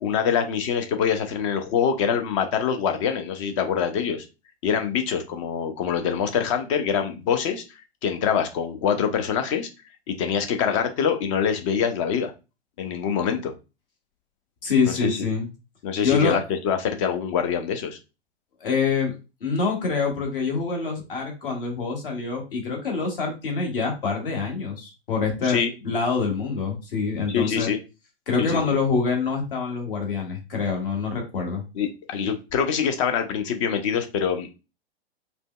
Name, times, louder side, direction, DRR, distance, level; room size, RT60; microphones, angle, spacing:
voice 1, 0.0-4.3 4.6-7.6 8.0-9.7 10.1-12.3 12.8-13.5 14.8-15.3 15.8-18.0 25.4-25.7 27.3-27.8 28.4-28.7 31.7-34.5, left 7 dB, 30° left, 7 dB, 0.5 m, -25 dB
voice 2, 14.6-15.5 16.0-16.4 18.6-19.1 19.4-27.7 28.3-31.6, left 5 dB, 55° left, 1 dB, 1.4 m, -25 dB
5.0 x 2.1 x 2.2 m, 0.29 s
figure-of-eight pair, 105°, 33 cm